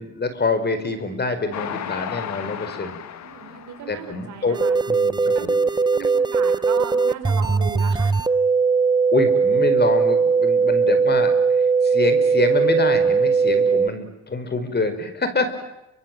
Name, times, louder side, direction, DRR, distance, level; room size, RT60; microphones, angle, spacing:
voice 1, 0.0-3.0 3.9-4.6 4.9-5.5 9.1-15.5, left 3 dB, 35° left, 10 dB, 4.7 m, -26 dB
Train, 1.5-5.0 5.5-5.6 5.9-6.0, left 9 dB, 65° left, 1.9 m, -34 dB
voice 2, 2.9-4.8 5.3-5.6 5.9-8.1 15.5-15.6, right 8 dB, 80° right, 5 dB, 5.4 m, -36 dB
sound 1, 4.5-13.9, right 5 dB, 15° right, 0.9 m, -19 dB
29.5 x 25.0 x 7.7 m, 0.91 s
cardioid pair, 90°, 30 cm